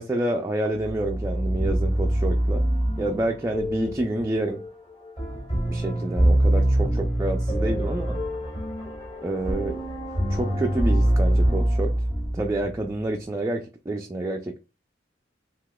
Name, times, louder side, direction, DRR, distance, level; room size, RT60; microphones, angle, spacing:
voice 1, 0.0-2.6 3.0-4.6 5.7-8.2 9.2-9.8 10.3-11.9 12.3-14.6, right 1 dB, 15° right, 0.3 m, -28 dB
sound 1, 0.8-12.8, right 1 dB, 35° left, 1.5 m, -24 dB
3.7 x 2.8 x 2.2 m
head